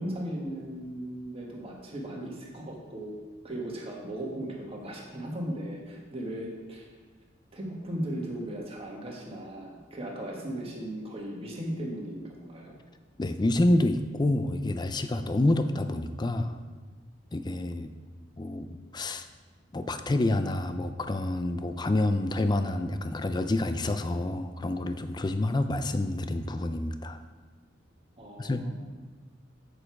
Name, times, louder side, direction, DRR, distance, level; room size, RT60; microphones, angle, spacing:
voice 1, 0.0-3.1 3.4-6.9 7.5-12.8 28.2-28.8, right 1 dB, 30° right, -1 dB, 1.6 m, -37 dB
voice 2, 13.2-16.6 17.3-17.9 18.4-19.3 19.7-27.2 28.4-28.7, left 1 dB, 25° left, 9 dB, 0.4 m, -28 dB
7.7 x 6.6 x 4.7 m, 1.4 s
head